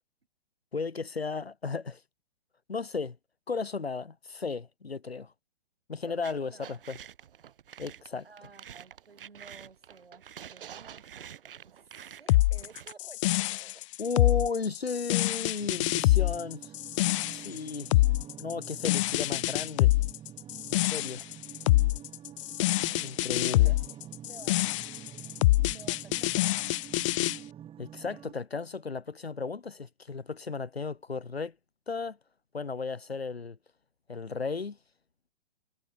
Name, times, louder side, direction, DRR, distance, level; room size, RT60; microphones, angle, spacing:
voice 1, 0.7-2.0 2.7-3.2 3.5-5.3 5.9-7.0 7.8-8.3 14.0-16.7 17.3-17.9 18.4-19.9 20.7-21.2 23.0-23.7 27.8-31.5 31.9-32.2 32.5-33.6 34.1-34.8, left 4 dB, 90° left, 1.4 m, -35 dB
voice 2, 6.1-6.8 8.2-13.8 22.9-24.6 25.7-26.6, right 4 dB, 80° right, 7.0 m, -54 dB
sound 1, 6.2-12.9, right 9 dB, 65° right, 1.3 m, -48 dB
sound 2, 12.3-27.4, left 18 dB, 30° left, 0.6 m, -26 dB
sound 3, 15.6-28.3, right 10 dB, 20° right, 3.6 m, -48 dB
figure-of-eight pair, 120°, 30 cm